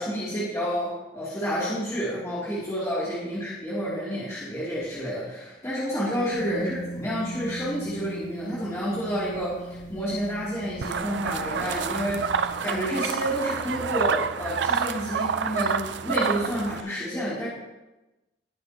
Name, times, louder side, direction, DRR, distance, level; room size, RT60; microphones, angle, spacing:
voice 1, 0.0-17.5, equal, 15° left, -10 dB, 3.0 m, -29 dB
sound 1, 6.3-12.5, right 1 dB, 40° left, 2.5 m, -39 dB
sound 2, 10.8-16.8, right 6 dB, 65° right, 0.4 m, -28 dB
19.5 x 8.3 x 3.0 m, 1.0 s
head